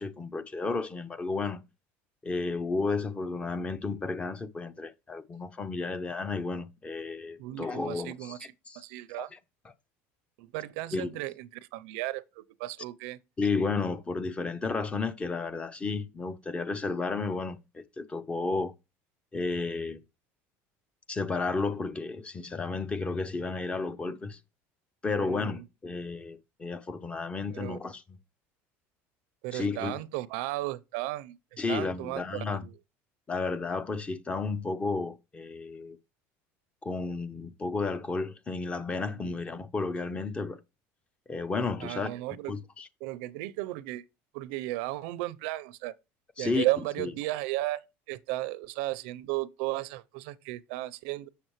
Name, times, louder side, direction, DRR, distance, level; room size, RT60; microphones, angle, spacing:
voice 1, 0.0-1.6 2.2-8.4 8.7-8.8 9.2-9.4 9.7-9.8 10.9-11.1 13.4-18.7 19.3-20.0 21.1-24.4 25.0-28.2 29.5-30.0 31.6-32.6 33.3-36.0 36.8-40.6 41.3-42.1 42.5-42.9 46.4-46.6 47.0-47.1, left 4 dB, 15° left, 0.5 m, -32 dB
voice 2, 7.4-8.4 8.8-9.3 10.4-13.2 25.2-25.6 27.5-27.8 29.4-31.4 31.7-32.7 39.2-39.4 41.8-42.5 43.0-44.0 44.3-45.9 46.4-51.3, right 17 dB, 80° right, 0.5 m, -35 dB
7.0 x 6.6 x 3.0 m
cardioid pair, 140°, 6 cm